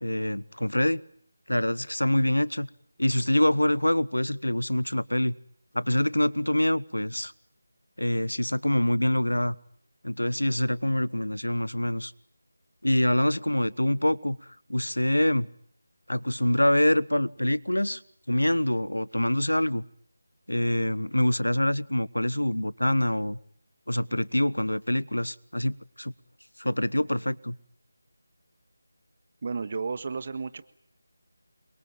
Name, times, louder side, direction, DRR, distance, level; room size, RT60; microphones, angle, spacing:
voice 1, 0.0-1.0 1.5-2.7 3.0-5.4 5.7-7.3 8.0-9.5 10.0-12.1 12.8-14.4 14.7-15.5 16.1-18.0 18.3-19.8 20.5-23.4 23.9-26.1 26.6-27.6, left 1 dB, 80° left, 20 dB, 1.2 m, -25 dB
voice 2, 29.4-30.7, right 4 dB, 35° right, 12 dB, 1.7 m, -32 dB
28.0 x 23.5 x 9.0 m, 0.65 s
figure-of-eight pair, 160°, 0 cm